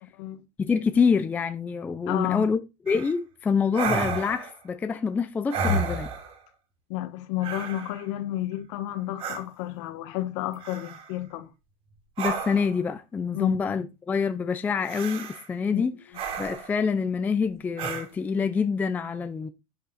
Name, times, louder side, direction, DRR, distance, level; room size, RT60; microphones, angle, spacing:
voice 1, 0.6-2.6 2.9-6.1 12.2-15.9 16.4-19.5, left 5 dB, 10° left, 0.5 m, -26 dB
voice 2, 2.1-2.5 6.9-11.5 13.3-13.6 15.7-15.8, left 14 dB, 55° left, 1.4 m, -31 dB
sound 1, 2.9-3.1 3.7-4.6 5.5-6.4 7.4-8.0 9.2-9.4 10.6-11.1 12.2-12.8 14.9-15.5 16.1-16.8 17.8-18.1, right 4 dB, 30° right, 2.4 m, -31 dB
10.5 x 7.9 x 4.1 m
supercardioid pair, 180°, 19 cm